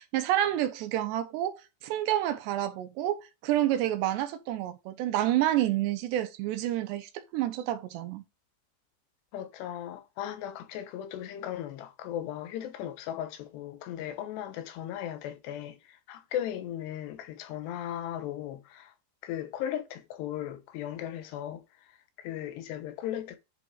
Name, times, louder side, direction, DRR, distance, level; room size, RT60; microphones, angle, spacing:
voice 1, 0.0-8.2, right 13 dB, 80° right, 3.2 m, -29 dB
voice 2, 9.3-18.9 19.2-21.6 21.9-23.4, left 11 dB, 85° left, 3.1 m, -37 dB
10.5 x 4.0 x 3.7 m
omnidirectional pair, 4.9 m